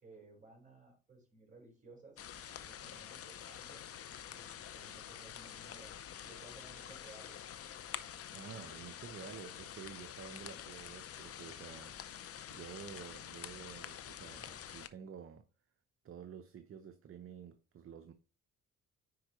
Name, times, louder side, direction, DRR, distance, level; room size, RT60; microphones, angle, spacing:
voice 1, 0.0-2.2 2.7-3.8 4.3-7.5, right 2 dB, 25° right, 4.4 m, -58 dB
sound 1, 2.2-14.9, left 9 dB, 50° left, 0.7 m, -48 dB
voice 2, 8.3-12.1 12.5-15.4 16.0-18.1, right 7 dB, 45° right, 0.8 m, -50 dB
9.6 x 4.6 x 3.0 m
cardioid pair, 90°, 30 cm